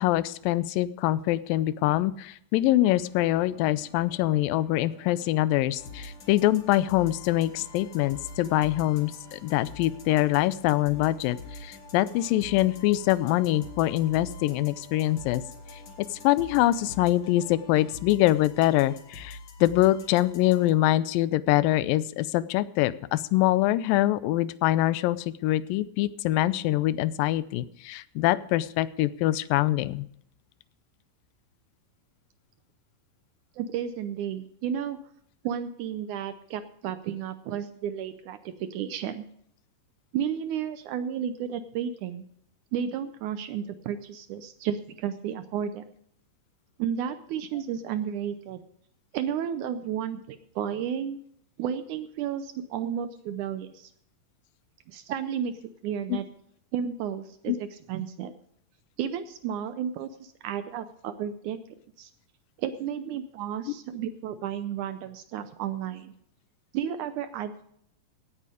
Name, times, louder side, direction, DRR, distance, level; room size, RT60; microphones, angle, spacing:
voice 1, 0.0-15.4 16.0-30.1 56.1-56.2 57.5-57.6, left 15 dB, 90° left, 17 dB, 2.3 m, -24 dB
sound 1, 2.9-17.9, right 3 dB, 15° left, 4.9 m, -53 dB
sound 2, 5.8-20.7, left 3 dB, 45° left, 1.9 m, -45 dB
voice 2, 33.6-35.0 35.4-39.2 40.1-42.2 42.7-45.8 46.8-48.6 49.1-51.2 51.6-53.9 54.9-55.5 55.8-56.3 56.7-58.3 59.0-61.6 62.0-62.1 62.6-66.1 66.7-67.6, right 9 dB, 75° right, 11 dB, 1.9 m, -32 dB
17.0 x 8.4 x 4.9 m, 0.69 s
omnidirectional pair, 3.9 m